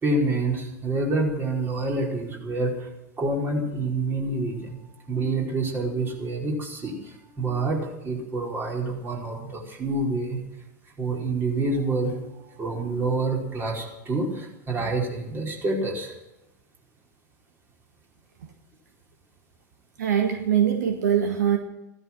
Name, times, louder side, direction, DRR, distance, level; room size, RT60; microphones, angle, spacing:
voice 1, 0.0-2.9 3.2-4.8 5.1-10.4 11.0-16.1, right 2 dB, 20° right, -1 dB, 4.8 m, -27 dB
voice 2, 20.0-21.6, right 9 dB, 70° right, 5 dB, 1.6 m, -22 dB
15.5 x 13.0 x 6.3 m, 0.90 s
figure-of-eight pair, 90°, 10 cm